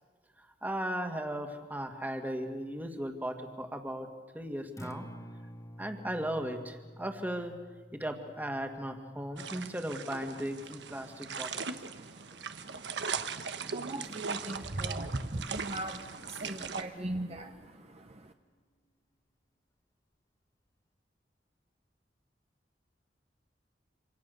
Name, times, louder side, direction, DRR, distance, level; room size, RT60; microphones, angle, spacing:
voice 1, 0.4-4.1 4.3-5.1 5.8-7.5 7.9-11.7, right 1 dB, 10° right, 5 dB, 2.1 m, -37 dB
Acoustic guitar, 4.6-12.8, equal, 20° left, 1.4 m, -52 dB
sound 1, 9.4-16.8, right 5 dB, 80° right, 1.2 m, -39 dB
voice 2, 11.9-18.3, right 1 dB, 35° right, 6 dB, 1.0 m, -40 dB
sound 2, 13.5-18.7, equal, 55° left, 2.4 m, -57 dB
27.0 x 26.0 x 6.8 m, 1.5 s
head